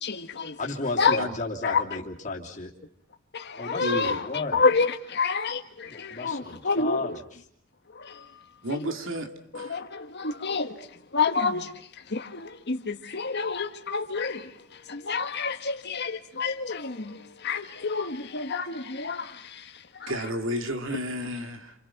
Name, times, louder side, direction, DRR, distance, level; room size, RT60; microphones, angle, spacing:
voice 1, 0.0-0.6 1.0-1.2 1.6-2.0 3.3-7.2 7.9-8.3 8.7-8.9 9.5-10.9 11.1-20.1, left 4 dB, 55° left, 1.5 m, -29 dB
voice 2, 0.6-2.7 3.6-4.6 5.9-7.1, left 3 dB, 40° left, 3.0 m, -33 dB
voice 3, 3.8-4.2 8.6-9.3 9.5-9.8 20.1-21.7, equal, 70° right, 2.9 m, -31 dB
28.5 x 27.5 x 6.0 m
head